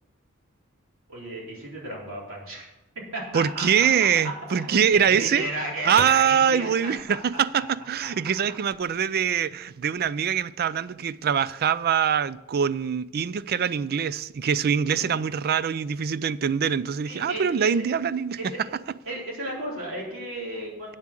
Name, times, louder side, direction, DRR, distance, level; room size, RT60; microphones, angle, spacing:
voice 1, 1.1-2.6 3.1-7.2 7.6-7.7 14.9-15.2 17.0-17.9 18.4-18.6 19.1-21.0, right 1 dB, 65° right, 3.9 m, -34 dB
voice 2, 3.3-5.5 5.9-18.4, right 7 dB, 45° right, 0.4 m, -24 dB
sound 1, 5.0-8.0 8.6-9.3 9.6-10.1, left 4 dB, 35° left, 0.7 m, -42 dB
8.8 x 7.3 x 7.5 m
head